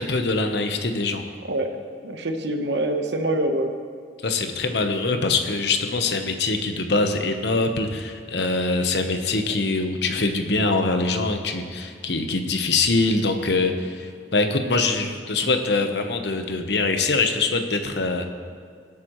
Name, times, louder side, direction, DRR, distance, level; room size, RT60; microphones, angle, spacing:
voice 1, 0.0-1.2 4.2-18.2, left 3 dB, 70° left, 6 dB, 1.0 m, -23 dB
voice 2, 2.0-3.7 9.4-9.5, right 1 dB, 75° right, 5 dB, 1.1 m, -25 dB
22.5 x 8.5 x 3.1 m, 2.1 s
head